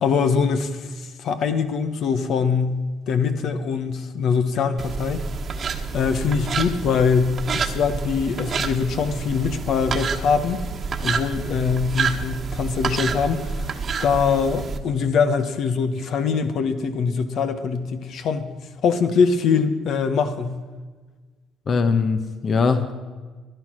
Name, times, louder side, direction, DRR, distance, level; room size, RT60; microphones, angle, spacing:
voice 1, 0.0-2.8 3.1-5.2 5.9-10.6 11.0-13.6 14.0-18.5 18.8-20.6, left 5 dB, 60° left, 9 dB, 1.2 m, -23 dB
sound 1, 4.8-14.8, right 5 dB, 40° right, 1.3 m, -28 dB
voice 2, 21.7-22.9, left 5 dB, 40° left, 9 dB, 1.0 m, -21 dB
15.0 x 11.5 x 6.3 m, 1.4 s
cardioid pair, 100°, 0 cm